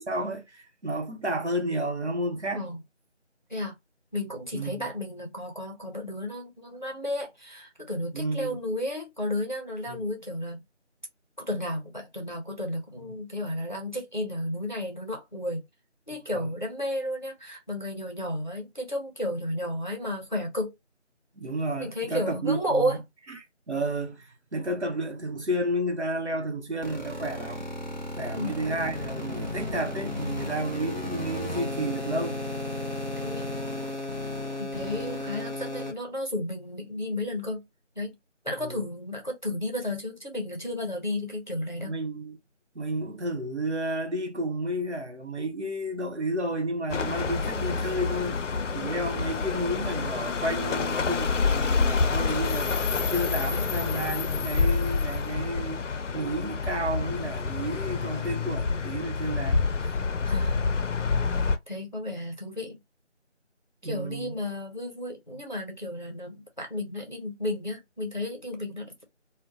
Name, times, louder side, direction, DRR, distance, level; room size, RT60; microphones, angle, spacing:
voice 1, 0.0-2.7 4.5-4.9 8.1-8.6 9.9-10.0 16.1-16.5 21.3-23.0 23.3-27.7 28.1-32.4 38.6-38.8 41.8-42.4 42.7-48.4 48.7-52.7 53.1-55.9 56.1-59.9 63.8-64.3, right 1 dB, 65° right, 0.9 m, -31 dB
voice 2, 4.1-10.6 11.4-15.6 16.1-20.7 21.8-23.0 28.3-28.6 33.2-33.5 34.6-37.6 38.0-38.1 38.4-42.0 60.2-60.7 61.7-62.8 63.8-68.9, left 1 dB, 40° left, 0.6 m, -33 dB
sound 1, 26.8-35.9, left 1 dB, 40° right, 0.7 m, -34 dB
sound 2, 46.9-61.6, left 4 dB, 80° left, 0.5 m, -28 dB
2.8 x 2.2 x 2.3 m
figure-of-eight pair, 180°, 36 cm